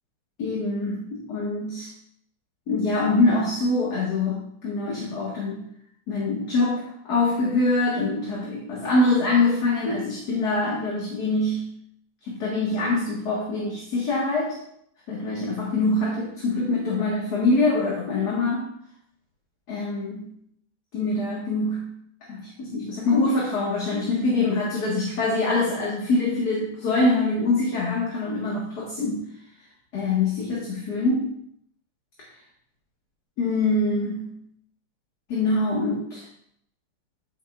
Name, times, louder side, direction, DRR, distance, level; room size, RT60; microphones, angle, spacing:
voice 1, 0.4-1.9 2.7-5.7 6.1-11.7 12.3-14.6 15.1-18.6 19.7-20.3 20.9-21.9 22.3-29.2 29.9-31.3 33.4-34.3 35.3-36.2, left 2 dB, 50° left, -5 dB, 2.1 m, -24 dB
13.5 x 6.4 x 2.4 m, 0.71 s
omnidirectional pair, 2.4 m